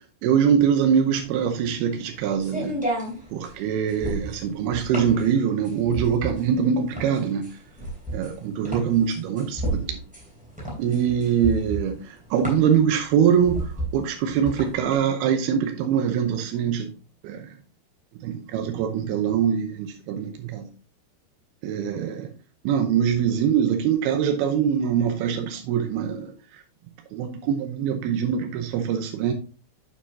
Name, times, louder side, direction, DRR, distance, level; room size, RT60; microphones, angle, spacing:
voice 1, 0.2-2.8 3.3-7.5 8.1-10.0 10.8-12.0 12.3-13.6 13.9-16.9 17.2-17.5 18.2-20.7 21.6-22.3 22.7-26.3 27.1-29.3, right 8 dB, 85° right, 2.2 m, -23 dB
sound 1, 1.0-14.9, right 1 dB, ahead, 1.9 m, -32 dB
9.6 x 6.3 x 2.7 m
omnidirectional pair, 5.5 m